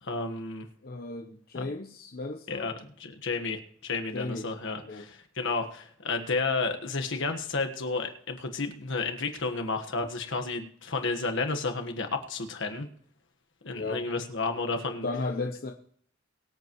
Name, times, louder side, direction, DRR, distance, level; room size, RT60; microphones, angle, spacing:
voice 1, 0.0-0.7 1.5-1.7 2.5-2.7 3.0-12.9 13.6-15.1, left 3 dB, 65° left, 5 dB, 1.5 m, -32 dB
voice 2, 0.8-2.7 4.1-4.5 4.8-5.0 13.8-14.0 14.8-15.7, left 3 dB, 50° left, 2 dB, 0.9 m, -35 dB
23.5 x 8.2 x 3.1 m, 0.62 s
head